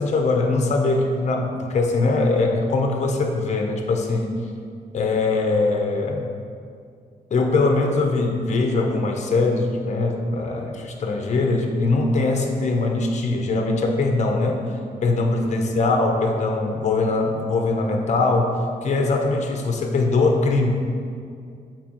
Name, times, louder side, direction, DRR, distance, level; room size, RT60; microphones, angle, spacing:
voice 1, 0.0-4.3 4.9-6.3 7.3-14.6 15.0-20.7, left 3 dB, 45° left, 2 dB, 0.7 m, -21 dB
7.3 x 4.5 x 3.0 m, 2.3 s
cardioid pair, 95°, 16 cm